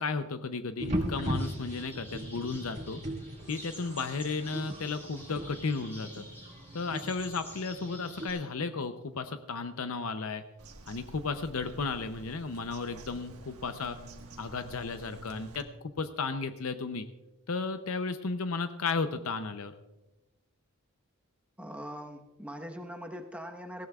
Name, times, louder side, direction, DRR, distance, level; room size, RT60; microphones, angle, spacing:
voice 1, 0.0-3.0 3.5-6.3 6.7-10.4 10.9-14.0 14.4-15.7 16.0-17.1 17.5-19.7, left 4 dB, 75° left, 9 dB, 0.7 m, -34 dB
sound 1, 0.8-8.3, equal, 30° right, 2.2 m, -38 dB
sound 2, 1.4-8.4, equal, 10° left, 3.9 m, -50 dB
Bird vocalization bird call bird song, 10.6-15.6, right 2 dB, 85° right, 1.5 m, -49 dB
voice 2, 21.6-23.9, equal, 5° right, 3 dB, 1.1 m, -42 dB
19.0 x 16.0 x 2.4 m, 1.0 s
head